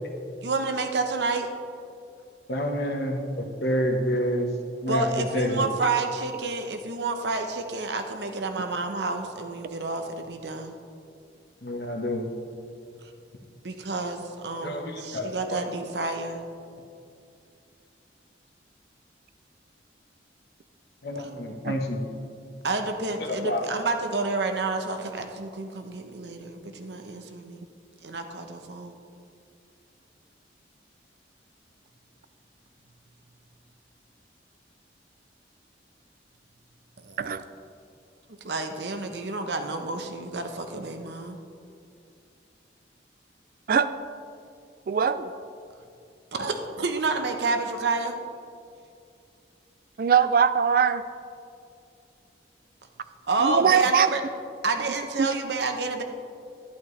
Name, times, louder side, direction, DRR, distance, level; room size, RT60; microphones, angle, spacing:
voice 1, 0.4-1.5 4.9-10.7 13.6-16.4 21.2-21.3 22.6-27.6 28.0-29.0 37.0-37.3 38.4-41.4 46.3-48.2 53.3-54.2 54.6-56.0, right 3 dB, 70° right, 6 dB, 0.9 m, -29 dB
voice 2, 2.5-4.5 4.8-5.0 5.3-5.7 11.6-12.3 14.6-15.6 21.0-22.0 23.2-23.6, equal, 65° left, 2 dB, 1.2 m, -28 dB
voice 3, 44.9-45.3 50.0-51.0 53.4-54.1 55.2-55.3, right 7 dB, 50° right, 12 dB, 0.3 m, -21 dB
11.5 x 11.0 x 3.2 m, 2.5 s
head